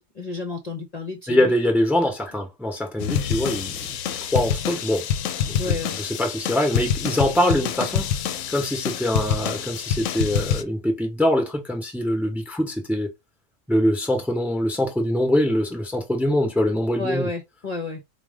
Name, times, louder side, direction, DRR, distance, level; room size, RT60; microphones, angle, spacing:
voice 1, 0.0-1.5 5.6-6.0 17.0-18.0, left 2 dB, 35° left, 0.8 m, -31 dB
voice 2, 1.3-5.1 5.5-8.1 8.5-13.1 13.7-17.3, left 1 dB, ahead, 0.9 m, -23 dB
sound 1, 3.0-10.6, left 9 dB, 75° left, 0.9 m, -26 dB
4.6 x 2.4 x 3.6 m
omnidirectional pair, 1.3 m